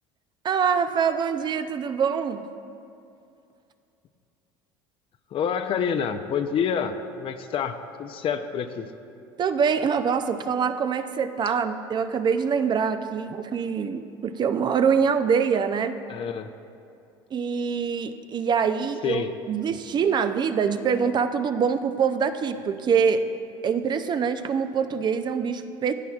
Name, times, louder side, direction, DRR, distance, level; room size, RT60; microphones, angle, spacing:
voice 1, 0.4-2.4 9.4-16.0 17.3-23.2 23.6-25.9, right 6 dB, 35° right, 10 dB, 0.5 m, -24 dB
voice 2, 5.3-8.9 16.1-16.5 19.0-19.3, left 7 dB, 45° left, 9 dB, 0.6 m, -27 dB
16.5 x 8.4 x 2.4 m, 2.6 s
hypercardioid pair, 80°, 13 cm